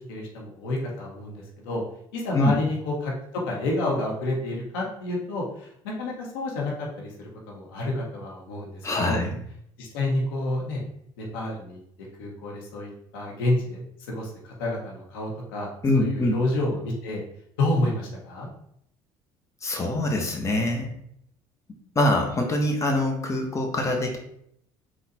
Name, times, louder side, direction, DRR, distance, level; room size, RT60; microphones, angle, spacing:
voice 1, 0.1-1.8 2.1-3.1 3.4-9.2 9.8-10.8 11.2-11.8 12.2-17.2 17.6-18.5, left 2 dB, 90° left, -2 dB, 1.1 m, -29 dB
voice 2, 8.8-9.4 15.8-16.4 19.6-20.9 21.9-24.2, left 1 dB, 25° left, 2 dB, 1.0 m, -24 dB
4.1 x 2.4 x 4.1 m, 0.71 s
supercardioid pair, 75°, 12 cm